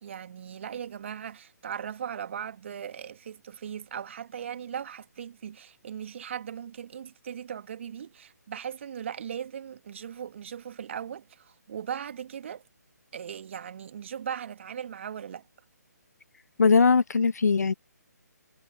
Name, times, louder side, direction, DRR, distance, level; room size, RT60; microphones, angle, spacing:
voice 1, 0.0-12.6 13.1-15.4, right 8 dB, 45° right, 1.8 m, -38 dB
voice 2, 16.6-17.7, left 5 dB, 60° left, 1.1 m, -20 dB
figure-of-eight pair, 145°, 10 cm